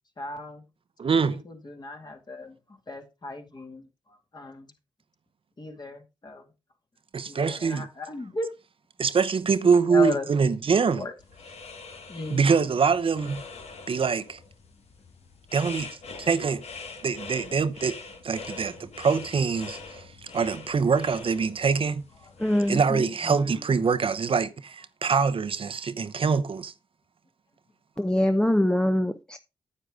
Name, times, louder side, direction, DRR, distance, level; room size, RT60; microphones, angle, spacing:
voice 1, 0.2-0.6 1.3-4.7 5.6-6.5 7.3-8.5 9.8-10.3 11.0-11.1 12.1-12.6 23.2-23.7, left 3 dB, 40° left, 2.3 m, -36 dB
voice 2, 1.0-1.4 7.1-7.9 9.0-11.0 12.3-13.4 13.9-14.4 15.5-15.9 16.3-16.6 17.0-18.0 18.2-22.0 22.7-26.7, right 5 dB, 55° right, 0.8 m, -24 dB
sound 1, 11.2-22.7, left 4 dB, 70° left, 1.6 m, -44 dB
voice 3, 22.4-23.1 28.0-29.4, left 1 dB, 10° left, 0.8 m, -24 dB
9.7 x 7.8 x 3.7 m
supercardioid pair, 45°, 11 cm